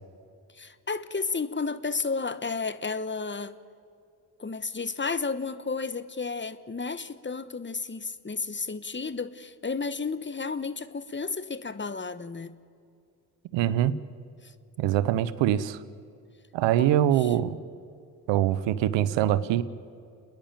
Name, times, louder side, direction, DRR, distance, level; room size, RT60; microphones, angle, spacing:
voice 1, 0.5-3.5 4.4-12.5 14.4-14.5 16.8-17.4, left 4 dB, 25° left, 14 dB, 1.2 m, -32 dB
voice 2, 13.5-14.0 14.8-15.8 16.5-17.6 18.3-19.6, right 11 dB, 85° right, 17 dB, 0.8 m, -23 dB
28.5 x 10.5 x 9.0 m, 2.4 s
supercardioid pair, 45°, 43 cm